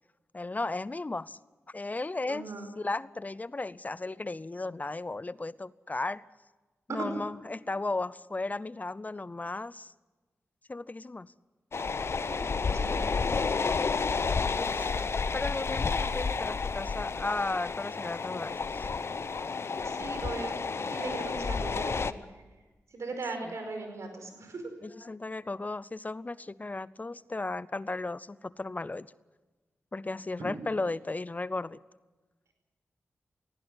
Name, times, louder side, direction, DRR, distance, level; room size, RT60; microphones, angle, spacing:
voice 1, 0.3-1.4 1.7-2.5 2.8-6.2 6.9-9.9 10.7-11.3 14.2-14.9 15.3-18.9 24.8-29.1 29.9-31.8, left 2 dB, 30° left, 20 dB, 0.6 m, -35 dB
voice 2, 2.3-2.7 6.9-7.2 12.3-12.4 12.7-13.4 19.8-20.6 20.8-22.4 22.9-24.7 30.5-30.6, right 3 dB, 75° right, 5 dB, 5.1 m, -38 dB
sound 1, 11.7-22.1, left 4 dB, 55° left, 0.8 m, -31 dB
19.0 x 16.0 x 9.6 m, 1.2 s
cardioid pair, 45°, 5 cm